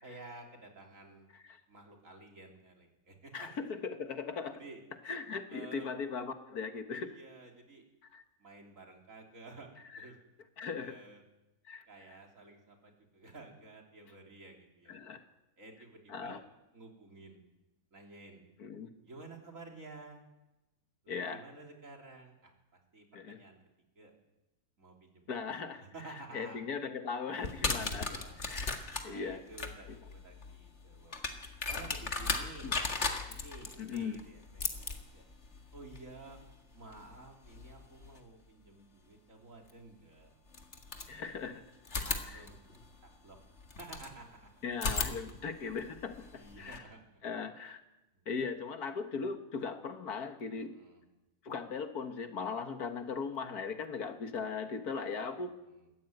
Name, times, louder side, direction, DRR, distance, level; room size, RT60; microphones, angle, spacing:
voice 1, 0.0-1.3 1.7-3.5 4.5-4.8 5.5-5.9 6.9-7.8 8.4-10.2 10.8-11.2 11.9-14.9 15.6-16.4 16.7-17.4 17.9-18.4 19.0-20.2 21.0-22.5 22.9-23.6 24.0-24.1 24.8-26.7 27.7-28.4 29.0-31.1 31.6-32.9 33.2-35.2 35.7-36.4 36.7-40.3 41.4-41.5 42.0-42.6 43.2-43.4 43.8-44.5 46.3-47.0 48.1-48.3 50.7-51.0 55.7-55.9, right 2 dB, 55° right, 1 dB, 3.8 m, -52 dB
voice 2, 3.3-4.6 5.1-7.2 8.1-8.2 10.6-11.0 11.7-11.9 14.9-15.2 16.1-16.4 18.6-18.9 21.1-21.4 23.1-23.4 25.3-25.8 26.3-28.1 28.4-28.8 29.0-29.4 32.6-32.7 33.8-34.2 41.1-41.6 42.3-42.4 44.6-46.8 47.2-47.8 48.3-50.7 51.4-55.5, left 5 dB, 70° left, 7 dB, 2.0 m, -38 dB
sound 1, 27.4-38.2 39.7-39.8 40.5-41.5 41.9-44.1 44.7-46.8, left 3 dB, 45° left, 2.1 m, -38 dB
21.5 x 15.0 x 9.2 m, 1.0 s
omnidirectional pair, 1.7 m